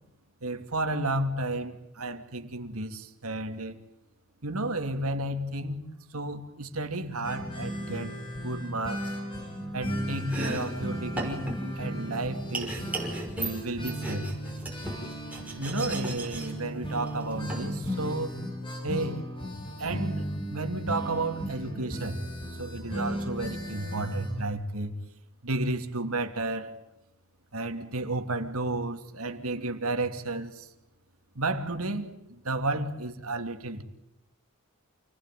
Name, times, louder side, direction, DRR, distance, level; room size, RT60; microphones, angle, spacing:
voice 1, 0.4-3.8 4.4-8.1 8.4-9.2 9.7-11.5 11.8-12.8 13.3-14.3 15.6-18.4 18.8-19.3 19.8-22.2 22.6-25.0 25.4-26.8 27.5-30.7 31.3-33.8, right 2 dB, 85° right, 2.9 m, -32 dB
sound 1, 7.2-24.4, equal, 25° left, 7.5 m, -36 dB
Domestic sounds home sounds, 10.1-18.4, right 1 dB, 5° right, 6.1 m, -38 dB
28.5 x 20.5 x 9.3 m
head